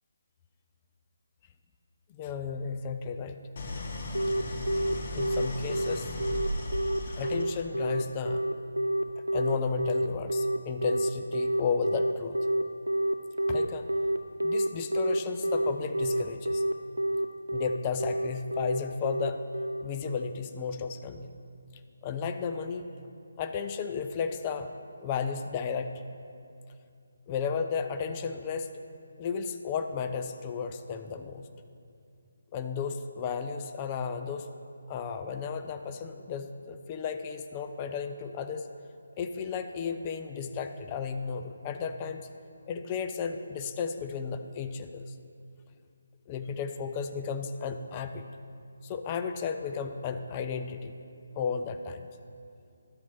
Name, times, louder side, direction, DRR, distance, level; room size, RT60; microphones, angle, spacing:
voice 1, 2.1-3.4 5.1-6.1 7.2-8.4 9.3-12.4 13.5-13.9 14.4-16.6 17.5-19.4 19.8-21.3 22.0-22.9 23.4-24.7 25.0-26.0 27.3-28.7 29.2-31.4 32.5-34.5 34.9-38.7 39.2-42.3 42.7-45.0 46.3-48.3 48.8-51.0 51.4-52.0, left 6 dB, 25° left, 7 dB, 0.4 m, -33 dB
Idling, 3.6-7.8, left 1 dB, 45° left, 0.8 m, -36 dB
Telephone, 4.1-20.3, right 1 dB, 90° right, 0.4 m, -28 dB
11.5 x 4.4 x 4.2 m, 2.5 s
figure-of-eight pair, 150°, 0 cm